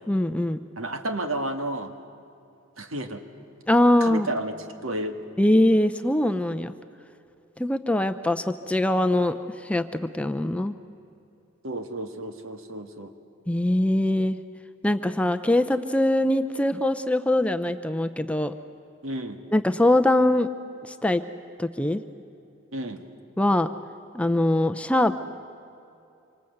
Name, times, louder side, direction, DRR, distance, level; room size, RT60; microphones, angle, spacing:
voice 1, 0.1-0.6 3.7-4.3 5.4-6.7 7.6-10.8 13.5-14.4 14.8-18.5 19.5-20.5 20.8-21.2 21.6-22.0 23.4-23.7 24.1-25.2, left 1 dB, 5° left, 9 dB, 0.5 m, -22 dB
voice 2, 0.8-1.9 2.8-3.2 4.0-4.5 4.8-5.2 11.6-13.1 19.0-19.4 22.7-23.0, right 1 dB, 75° right, 6 dB, 1.7 m, -31 dB
26.5 x 25.0 x 7.9 m, 2.6 s
head